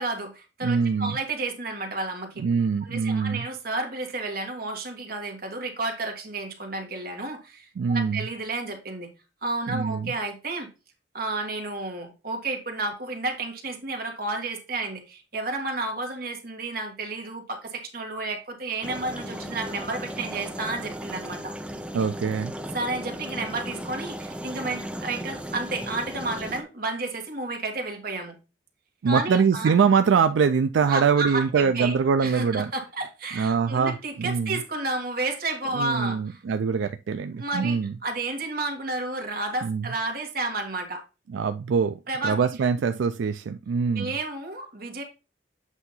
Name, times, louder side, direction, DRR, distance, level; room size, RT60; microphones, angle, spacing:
voice 1, 0.0-2.4 2.8-9.1 9.4-10.7 11.1-21.5 22.7-28.3 29.0-29.7 30.9-31.9 32.2-36.4 37.4-37.8 38.0-41.0 42.1-42.4 43.9-45.0, right 2 dB, 50° right, 2 dB, 1.7 m, -31 dB
voice 2, 0.6-1.2 2.4-3.5 7.8-8.3 9.7-10.1 21.9-22.5 29.0-32.7 33.3-34.6 35.7-38.0 39.6-39.9 41.3-42.0 42.2-44.1, right 6 dB, 85° right, 9 dB, 0.4 m, -23 dB
sound 1, 18.8-26.6, equal, 5° right, 0.5 m, -36 dB
8.1 x 2.8 x 5.5 m, 0.29 s
head